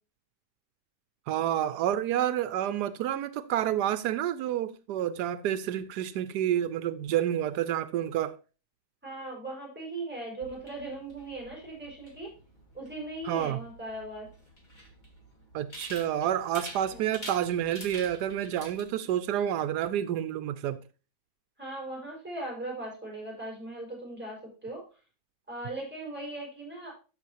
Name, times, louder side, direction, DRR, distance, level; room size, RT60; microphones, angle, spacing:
voice 1, 1.3-8.4 13.2-13.6 15.5-20.8, right 11 dB, 85° right, 1.2 m, -29 dB
voice 2, 9.0-12.3 12.7-14.3 16.9-17.3 21.6-24.8 25.5-26.9, right 2 dB, 5° right, 5.4 m, -39 dB
sound 1, 10.4-18.8, equal, 30° left, 2.2 m, -47 dB
13.0 x 6.2 x 2.9 m
omnidirectional pair, 1.7 m